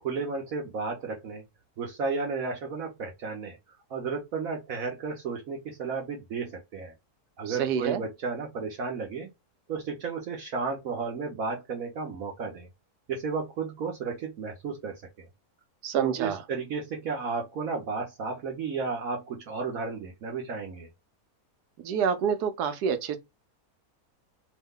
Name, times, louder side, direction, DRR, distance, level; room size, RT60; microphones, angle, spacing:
voice 1, 0.0-1.4 1.8-3.6 3.9-6.9 7.4-9.3 9.7-12.7 13.1-15.3 15.9-20.9, right 4 dB, 65° right, 1.2 m, -33 dB
voice 2, 7.5-8.0 15.8-16.4 21.8-23.2, right 7 dB, 85° right, 1.2 m, -27 dB
3.1 x 2.1 x 3.5 m
omnidirectional pair, 1.6 m